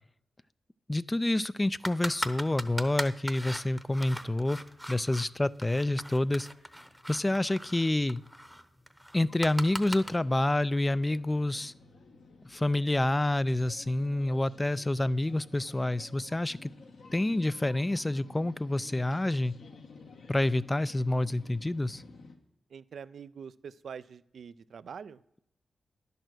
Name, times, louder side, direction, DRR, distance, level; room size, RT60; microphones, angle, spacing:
voice 1, 0.9-4.6 4.9-6.5 7.1-8.2 9.1-11.7 12.5-16.7 17.1-19.5 20.3-22.0, left 1 dB, 20° left, 18 dB, 0.3 m, -28 dB
sound 1, 1.8-5.3 5.6-10.1, equal, ahead, 0.8 m, -38 dB
sound 2, 9.1-22.4, left 3 dB, 75° left, 1.1 m, -53 dB
voice 2, 22.7-25.2, right 6 dB, 75° right, 14 dB, 0.3 m, -44 dB
10.5 x 6.8 x 6.1 m, 0.77 s
cardioid pair, 60°, 0 cm